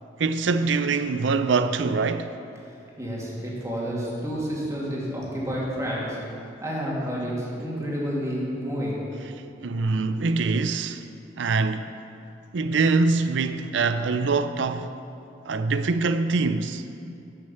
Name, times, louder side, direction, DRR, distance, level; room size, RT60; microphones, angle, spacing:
voice 1, 0.2-2.3 9.6-11.0 11.4-11.9 12.5-15.0 15.5-16.8, right 4 dB, 70° right, 0.5 m, -24 dB
voice 2, 3.0-6.2 6.6-9.0, equal, 15° right, 2.4 m, -29 dB
12.0 x 6.3 x 7.0 m
head